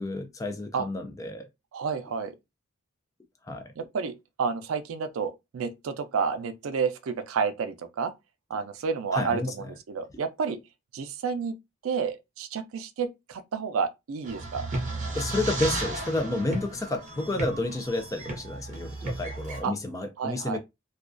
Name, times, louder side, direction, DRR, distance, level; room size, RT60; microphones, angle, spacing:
voice 1, 0.0-1.5 3.4-3.7 9.1-9.5 15.1-20.6, left 2 dB, 15° left, 0.3 m, -30 dB
voice 2, 1.7-2.3 3.8-8.1 8.5-10.6 10.9-11.6 11.8-14.6 19.6-19.7 20.2-20.6, right 5 dB, 90° right, 0.4 m, -30 dB
sound 1, 14.2-19.6, right 2 dB, 35° right, 0.7 m, -34 dB
2.3 x 2.2 x 2.4 m
head